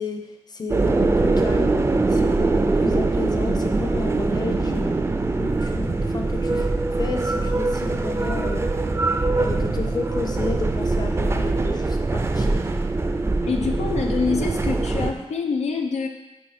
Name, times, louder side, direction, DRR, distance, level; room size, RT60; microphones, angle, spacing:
voice 1, 0.0-1.8 2.1-5.0 5.4-6.7 7.0-8.6 9.3-12.7, left 3 dB, 40° left, 4 dB, 0.9 m, -32 dB
sound 1, 0.7-15.1, right 3 dB, 25° right, 0.5 m, -22 dB
sound 2, 1.5-14.3, left 3 dB, 70° left, 2.4 m, -44 dB
voice 2, 13.5-16.1, left 5 dB, 90° left, 3 dB, 0.8 m, -25 dB
9.3 x 4.7 x 4.3 m, 1.0 s
wide cardioid pair, 110°, 11 cm